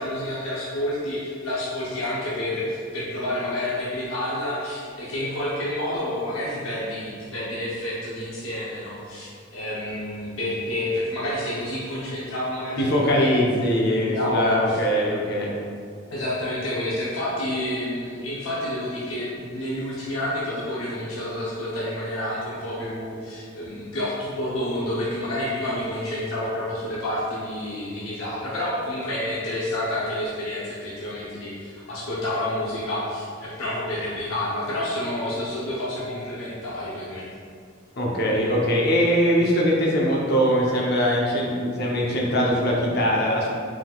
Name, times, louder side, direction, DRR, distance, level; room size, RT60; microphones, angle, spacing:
voice 1, 0.0-13.3 14.0-14.8 16.1-37.2, left 1 dB, 90° left, -8 dB, 0.8 m, -29 dB
voice 2, 12.8-15.6 38.0-43.5, equal, 50° left, -3 dB, 0.7 m, -21 dB
4.8 x 3.8 x 2.3 m, 2.1 s
head